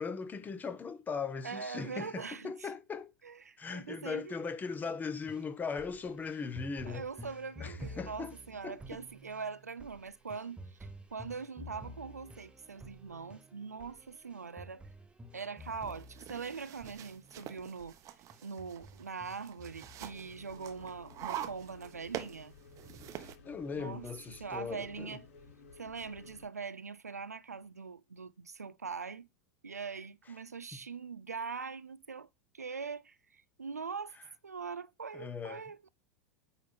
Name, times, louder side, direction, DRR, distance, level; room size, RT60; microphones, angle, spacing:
voice 1, 0.0-3.1 3.6-7.0 7.6-8.3 8.6-9.0 23.1-25.2 30.7-30.8 35.1-35.6, left 5 dB, 20° left, 1.1 m, -39 dB
voice 2, 1.4-2.7 3.2-4.4 6.8-10.8 11.1-14.8 15.3-17.9 18.4-22.5 23.7-24.1 24.4-25.3 25.8-29.3 29.6-32.3 32.5-34.2 34.4-35.9, right 5 dB, 90° right, 0.4 m, -42 dB
sound 1, 5.2-17.4 17.8-18.0 18.3-20.4 20.8-21.4 21.8-21.9, equal, 10° right, 1.0 m, -51 dB
sound 2, 15.6-23.4, right 11 dB, 40° right, 1.0 m, -45 dB
sound 3, 20.1-26.5, left 4 dB, 65° left, 3.0 m, -55 dB
8.8 x 3.6 x 5.6 m
figure-of-eight pair, 90°, 8 cm